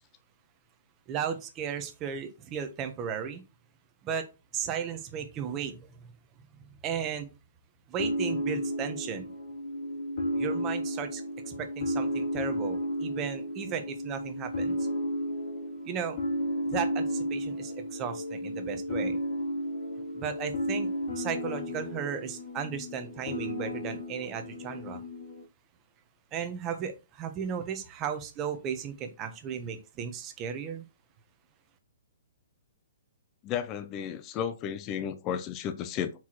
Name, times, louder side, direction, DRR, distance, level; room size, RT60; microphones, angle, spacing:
voice 1, 1.1-3.4 4.0-4.2 4.5-5.8 6.8-7.3 7.9-9.3 10.4-11.2 11.5-14.8 15.8-16.2 16.7-19.2 20.1-20.9 21.1-25.0 26.3-30.8, right 7 dB, 20° right, 0.9 m, -35 dB
sound 1, 8.0-25.4, equal, 55° left, 2.7 m, -33 dB
voice 2, 33.4-36.1, left 8 dB, 20° left, 0.5 m, -33 dB
8.0 x 4.8 x 3.0 m
hypercardioid pair, 165°, 0 cm